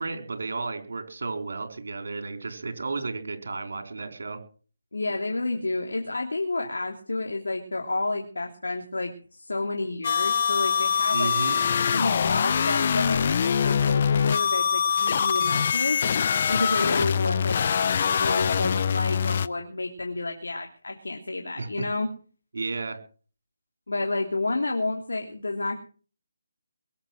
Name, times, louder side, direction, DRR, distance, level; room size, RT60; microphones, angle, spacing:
voice 1, 0.0-4.4 11.1-11.6 21.6-21.7 22.5-23.0, right 3 dB, 65° right, 6 dB, 4.4 m, -33 dB
voice 2, 4.9-11.3 11.9-16.0 16.5-17.6 18.1-22.1 23.9-25.8, left 2 dB, 80° left, 2 dB, 2.9 m, -30 dB
sound 1, 10.0-19.5, left 7 dB, 45° left, 0.7 m, -24 dB
22.5 x 8.2 x 6.2 m, 0.41 s
figure-of-eight pair, 155°, 0 cm